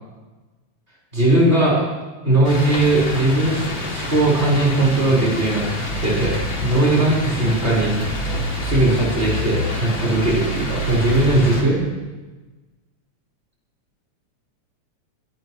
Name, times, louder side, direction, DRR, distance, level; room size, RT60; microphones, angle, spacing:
voice 1, 1.1-1.8 2.2-5.6 6.0-8.3 8.6-11.8, right 2 dB, 20° right, -5 dB, 5.2 m, -19 dB
sound 1, 2.4-11.6, left 1 dB, 40° left, 3.4 m, -26 dB
24.5 x 13.5 x 3.2 m, 1.2 s
omnidirectional pair, 3.3 m